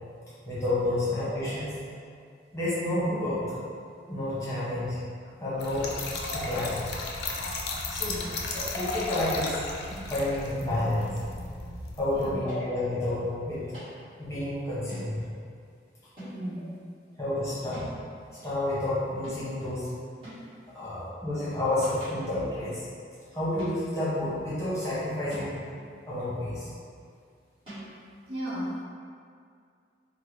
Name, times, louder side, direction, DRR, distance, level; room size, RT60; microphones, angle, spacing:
voice 1, 0.4-1.7 2.5-3.4 4.1-5.0 5.4-6.0 6.3-6.8 7.9-8.2 8.5-9.6 10.1-11.0 12.0-13.6 14.2-15.2 17.2-17.8 18.4-19.9 20.7-22.9 23.3-25.6 26.1-26.7, left 1 dB, 15° left, -11 dB, 0.9 m, -30 dB
Trickle dribble / Fill (with liquid), 5.6-12.3, left 2 dB, 70° left, 0.4 m, -34 dB
voice 2, 8.0-8.4 12.1-12.3 16.2-16.8 28.3-28.7, equal, 60° right, -7 dB, 0.8 m, -36 dB
sound 1, 9.9-10.3 11.0-11.4 12.5-12.9 13.7-14.0 14.9-15.2 16.2-16.6 17.7-18.1 19.2-19.6 20.2-20.6 21.5-22.4 23.6-24.1 25.3-25.8 27.7-27.9, equal, 30° right, 1.4 m, -45 dB
3.6 x 2.1 x 3.1 m, 2.2 s
head